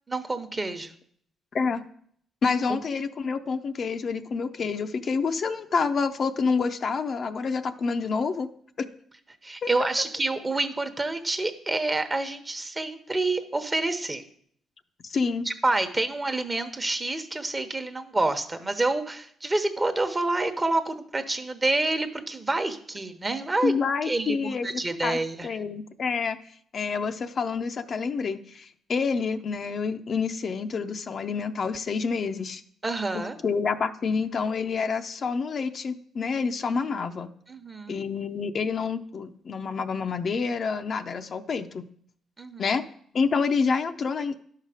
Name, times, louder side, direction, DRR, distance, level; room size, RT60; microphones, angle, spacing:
voice 1, 0.1-0.9 9.4-14.2 15.4-23.7 24.0-25.5 32.8-33.4 37.5-38.0 42.4-42.7, right 2 dB, 25° right, 8 dB, 1.0 m, -28 dB
voice 2, 1.5-1.8 2.4-8.5 8.8-8.9 9.6-9.7 15.0-15.5 23.6-25.2 25.4-26.4 26.7-32.6 33.4-37.3 37.9-41.9 42.6-42.8 43.1-44.4, left 5 dB, 50° left, 8 dB, 0.5 m, -28 dB
11.5 x 5.7 x 5.0 m, 0.63 s
cardioid pair, 90°, 0 cm